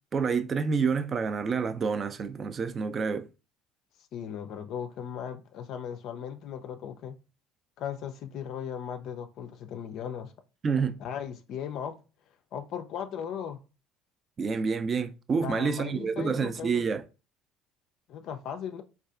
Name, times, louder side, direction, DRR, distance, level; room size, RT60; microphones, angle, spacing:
voice 1, 0.1-3.3 10.6-11.0 14.4-17.0, right 5 dB, 35° right, 0.3 m, -28 dB
voice 2, 4.1-7.2 7.8-10.3 11.0-12.0 12.5-13.6 15.4-16.8 18.1-18.8, left 8 dB, 55° left, 0.3 m, -37 dB
4.0 x 2.3 x 2.3 m
figure-of-eight pair, 60°, 0 cm